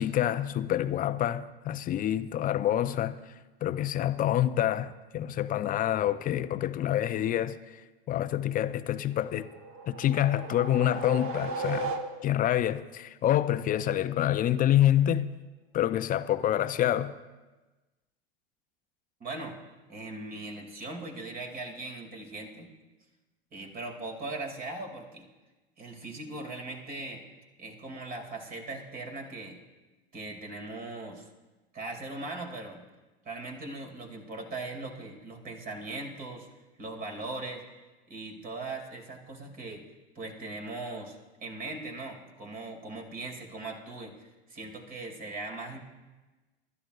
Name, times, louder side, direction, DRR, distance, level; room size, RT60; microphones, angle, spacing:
voice 1, 0.0-3.2 3.6-7.6 8.1-9.5 9.9-15.3 15.7-17.1, left 12 dB, 30° left, 0.6 m, -27 dB
sound 1, 9.3-12.6, right 3 dB, 50° right, 1.3 m, -36 dB
voice 2, 19.2-19.5 19.9-22.7 23.5-25.3 25.8-27.2 27.6-29.6 30.1-31.3 31.7-32.8 33.2-36.5 36.8-37.6 38.1-39.8 40.1-45.8, right 2 dB, 30° right, 2.7 m, -39 dB
24.5 x 13.0 x 2.5 m
hypercardioid pair, 90°, 29 cm